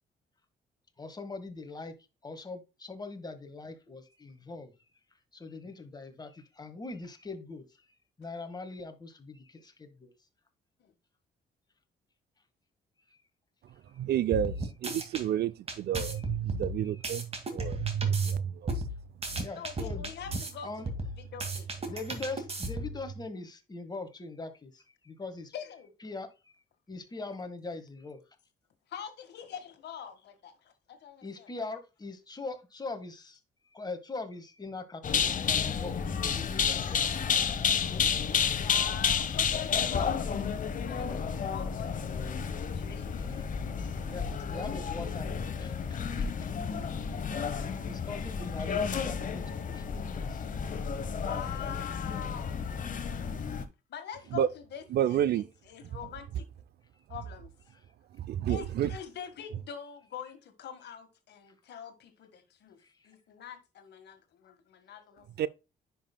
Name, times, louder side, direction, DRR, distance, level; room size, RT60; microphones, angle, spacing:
voice 1, 1.0-1.9 2.2-4.7 5.3-7.6 8.2-10.1 16.8-17.1 19.4-20.1 20.6-20.9 21.9-25.5 26.0-26.6 26.9-28.2 31.2-33.4 33.7-37.4 44.1-46.5 47.3-50.4, left 3 dB, 20° left, 1.6 m, -42 dB
voice 2, 14.0-14.6 14.8-18.7 54.3-54.5 54.9-55.4 58.2-58.9 65.4-65.5, right 10 dB, 65° right, 0.5 m, -29 dB
sound 1, 14.3-15.2 15.7-18.3 18.7-20.5 20.9-23.0, right 1 dB, 35° right, 2.1 m, -35 dB
voice 3, 19.5-22.0 25.5-25.9 28.9-31.5 38.5-42.0 42.7-43.2 51.1-52.7 53.9-56.4 57.1-57.5 58.5-65.5, left 8 dB, 70° left, 1.7 m, -44 dB
sound 2, 35.0-53.6, left 6 dB, 45° left, 1.0 m, -31 dB
10.0 x 5.6 x 2.2 m
cardioid pair, 95°, 18 cm